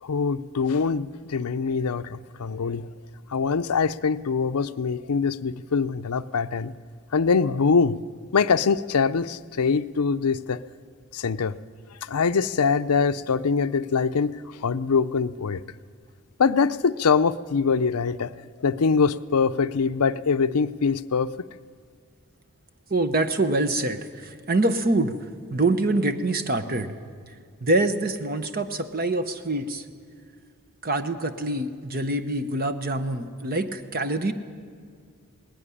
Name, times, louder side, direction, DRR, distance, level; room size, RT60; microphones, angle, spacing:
voice 1, 0.0-2.9 3.3-6.7 7.1-8.0 8.3-10.6 11.1-11.6 12.0-14.4 14.6-15.6 16.4-18.4 18.6-21.3, left 5 dB, 90° left, 13 dB, 0.6 m, -23 dB
voice 2, 22.9-25.2 25.5-26.9 27.6-29.8 30.8-34.3, right 2 dB, 40° right, 9 dB, 1.0 m, -25 dB
19.0 x 16.5 x 9.9 m, 2.1 s
head